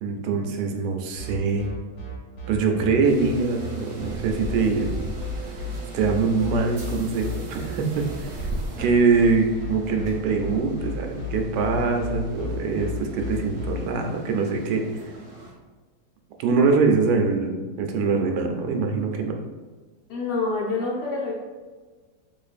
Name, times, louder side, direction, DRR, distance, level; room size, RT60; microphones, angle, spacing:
voice 1, 0.0-1.7 2.5-4.9 5.9-8.5 8.8-14.8 16.4-19.4, right 4 dB, 75° right, 3 dB, 1.1 m, -23 dB
sound 1, 1.2-13.8, left 3 dB, 45° left, 1.3 m, -33 dB
sound 2, 3.0-15.5, right 2 dB, 50° right, 0.9 m, -38 dB
voice 2, 20.1-21.3, left 3 dB, 75° left, -5 dB, 1.3 m, -26 dB
3.8 x 3.1 x 2.4 m, 1.3 s
omnidirectional pair, 1.8 m